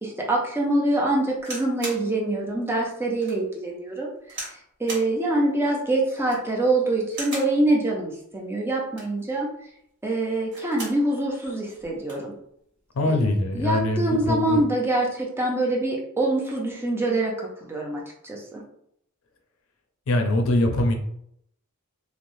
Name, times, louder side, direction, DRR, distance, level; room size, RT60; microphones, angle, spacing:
voice 1, 0.0-4.5 4.8-9.5 10.0-12.3 13.1-13.2 13.5-18.6, right 2 dB, 10° right, -2 dB, 0.5 m, -25 dB
sound 1, 1.4-2.1 2.6-2.7 3.2-3.4 4.3-4.6 4.9-5.1 6.1-6.5 7.1-7.6 8.8-9.2 10.3-11.0 11.4-11.5 11.8-12.3 13.1-13.4, right 1 dB, 50° right, 1.2 m, -37 dB
voice 2, 12.9-14.6 20.1-20.9, left 1 dB, 70° left, 4 dB, 0.5 m, -23 dB
3.1 x 2.0 x 2.6 m, 0.72 s
head